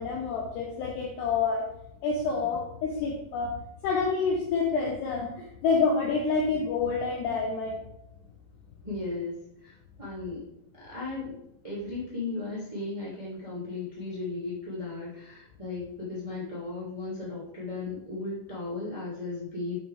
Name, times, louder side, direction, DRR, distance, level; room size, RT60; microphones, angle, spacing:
voice 1, 0.0-1.7 2.0-3.5 3.8-7.8, left 4 dB, 80° left, 0 dB, 2.4 m, -28 dB
voice 2, 8.8-9.4 9.6-10.4 10.7-11.3 11.6-19.8, left 3 dB, 25° right, -8 dB, 0.7 m, -36 dB
8.5 x 6.1 x 3.4 m, 0.81 s
omnidirectional pair, 5.9 m